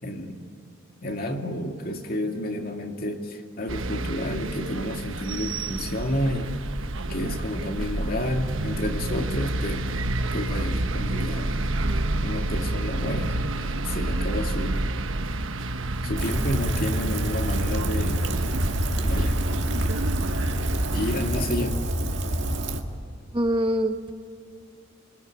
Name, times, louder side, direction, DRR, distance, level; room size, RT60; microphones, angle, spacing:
voice 1, 0.0-0.4 1.0-6.5 7.1-9.9 10.3-11.6 12.2-14.9 16.0-18.2 19.0-19.4 20.9-21.8, left 1 dB, 45° left, 3 dB, 2.3 m, -30 dB
sound 1, 3.7-21.4, right 2 dB, 75° right, 1.2 m, -29 dB
Rain, 16.2-22.8, right 1 dB, 60° right, 2.2 m, -27 dB
voice 2, 23.3-24.1, right 1 dB, 25° right, 6 dB, 1.2 m, -24 dB
26.0 x 24.5 x 9.1 m, 2.5 s
head